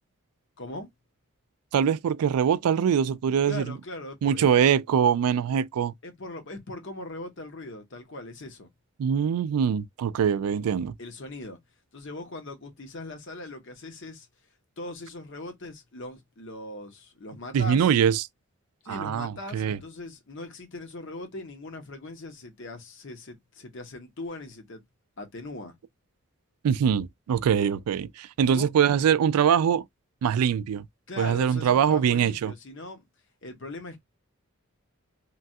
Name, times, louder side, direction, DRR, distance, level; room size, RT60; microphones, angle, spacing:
voice 1, 0.6-0.9 3.5-4.7 6.0-8.7 11.0-11.6 11.9-14.3 14.8-17.9 18.8-24.8 25.2-25.7 28.4-28.7 31.1-33.0 33.4-34.0, left 2 dB, 55° left, 0.8 m, -40 dB
voice 2, 1.7-3.7 4.2-5.9 9.0-10.9 17.5-18.2 18.9-19.8 26.6-29.8 30.2-30.8 31.2-32.5, right 8 dB, 85° right, 0.3 m, -23 dB
3.1 x 2.3 x 2.6 m
head